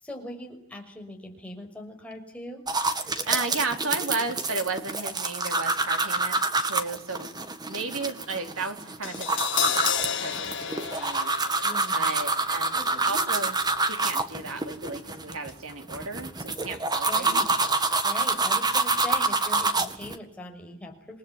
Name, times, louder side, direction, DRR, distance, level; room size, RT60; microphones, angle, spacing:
voice 1, 0.0-2.7 11.6-12.1 12.7-13.4 17.1-17.6 18.0-21.2, left 1 dB, 5° left, 1 dB, 6.0 m, -41 dB
sound 1, 2.7-20.2, right 3 dB, 20° right, 1.8 m, -27 dB
voice 2, 3.0-7.3 7.7-11.3 11.9-12.8 13.0-13.6 13.9-17.4, right 3 dB, 70° right, 5 dB, 3.8 m, -34 dB
Crash cymbal, 9.0-15.2 15.5-15.6, left 9 dB, 60° left, 1.7 m, -33 dB
28.0 x 20.5 x 9.9 m, 0.65 s
head